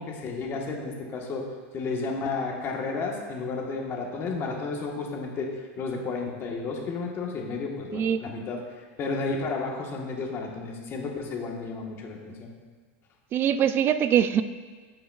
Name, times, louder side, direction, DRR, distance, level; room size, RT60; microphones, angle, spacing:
voice 1, 0.0-1.5 1.7-5.5 5.8-8.6 9.0-12.5, left 4 dB, 35° left, 1 dB, 1.3 m, -32 dB
voice 2, 7.9-8.2 13.3-14.4, right 9 dB, 30° right, 12 dB, 0.3 m, -23 dB
14.5 x 5.3 x 2.4 m, 1.5 s
supercardioid pair, 135°, 7 cm